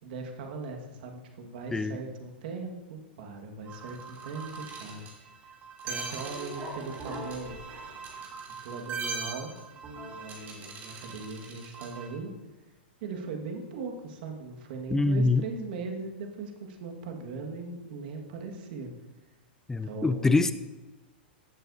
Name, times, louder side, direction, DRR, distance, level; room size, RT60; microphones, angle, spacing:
voice 1, 0.0-5.1 5.8-7.6 8.6-9.5 10.1-12.3 13.0-18.9 19.8-20.4, right 4 dB, 60° right, 3 dB, 1.7 m, -39 dB
sound 1, 3.7-12.1, right 4 dB, 30° right, 2.9 m, -40 dB
voice 2, 14.9-15.4 19.7-20.5, left 3 dB, 10° left, 12 dB, 0.5 m, -24 dB
15.0 x 8.0 x 2.7 m, 1.2 s
hypercardioid pair, 115°, 6 cm